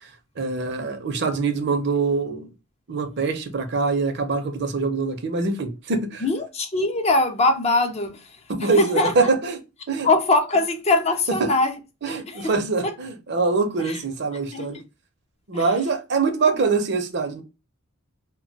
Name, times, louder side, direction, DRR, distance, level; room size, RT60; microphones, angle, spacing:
voice 1, 0.4-2.5 2.9-6.2 8.5-9.6 9.9-10.1 11.4-11.5 12.0-14.8 15.5-17.4, right 4 dB, 50° right, 0.6 m, -24 dB
voice 2, 6.2-9.3 10.0-11.7 12.1-12.6 12.8-12.9 13.8-14.0 14.5-14.8 15.5-15.7 16.6-16.7, left 2 dB, 30° left, 0.4 m, -22 dB
2.2 x 2.2 x 3.8 m
head